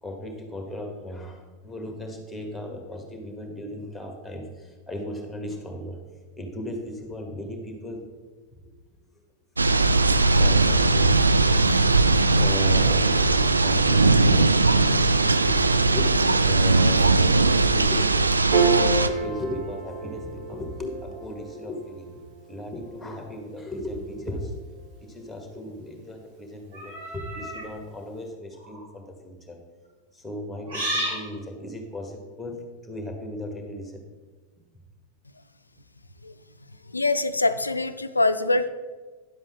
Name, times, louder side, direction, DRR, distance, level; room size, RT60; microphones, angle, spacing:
voice 1, 0.0-6.0 6.4-8.1 10.4-11.2 12.4-18.4 18.7-22.2 22.5-24.6 25.0-29.6 30.1-34.0, equal, ahead, 3 dB, 1.6 m, -36 dB
sound 1, 9.6-19.1, right 3 dB, 80° right, 0.4 m, -19 dB
Piano, 18.5-25.2, right 5 dB, 45° right, 1.6 m, -31 dB
sound 2, 26.7-27.7 28.5-28.8 30.7-31.2, right 1 dB, 65° right, 2.6 m, -31 dB
voice 2, 36.9-38.7, left 2 dB, 80° left, 11 dB, 0.4 m, -23 dB
10.0 x 7.5 x 3.6 m, 1.3 s
figure-of-eight pair, 90°, 0 cm